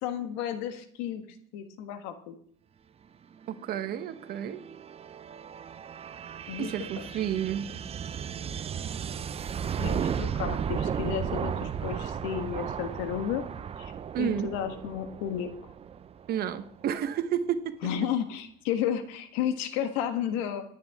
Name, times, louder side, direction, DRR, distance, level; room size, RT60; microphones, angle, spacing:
voice 1, 0.0-1.2 1.5-2.3 6.5-7.1 9.8-13.5 13.8-13.9 14.2-15.5 17.8-20.6, left 9 dB, 85° left, 8 dB, 1.5 m, -32 dB
sound 1, 3.4-16.9, right 8 dB, 30° right, 0.6 m, -35 dB
voice 2, 3.5-4.6 6.6-7.7 14.1-14.5 16.3-17.8, right 9 dB, 55° right, 10 dB, 1.2 m, -31 dB
24.5 x 9.5 x 3.6 m, 0.62 s
supercardioid pair, 105°, 19 cm